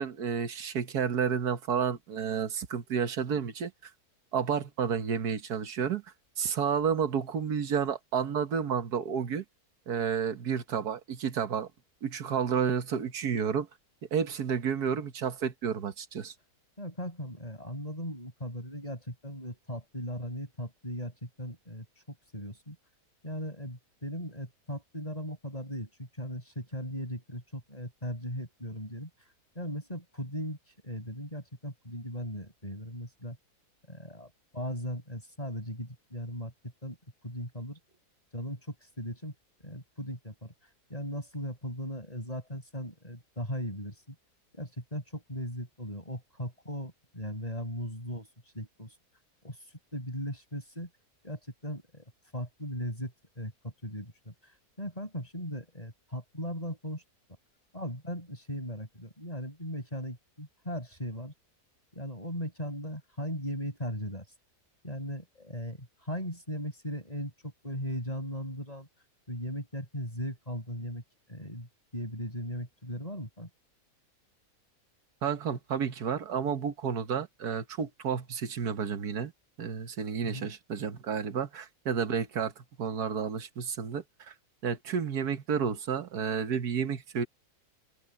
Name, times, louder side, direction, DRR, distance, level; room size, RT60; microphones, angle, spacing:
voice 1, 0.0-3.9 4.3-6.0 6.4-9.4 9.9-11.7 12.0-13.7 14.1-16.3 75.2-79.3 79.6-84.3 84.6-87.3, right 7 dB, 85° right, 1.8 m, -31 dB
voice 2, 16.8-22.8 23.2-25.9 26.2-29.1 29.6-30.6 30.8-33.4 33.9-36.5 36.8-37.0 37.2-37.8 38.3-39.3 39.6-40.5 40.9-44.2 44.5-48.3 48.5-48.9 49.4-49.6 49.9-50.9 51.2-52.1 52.3-54.3 54.8-57.0 57.7-61.3 61.9-64.2 64.8-68.9 69.3-71.0 71.3-73.5 80.2-80.5, equal, 25° left, 7.0 m, -38 dB
omnidirectional pair, 1.6 m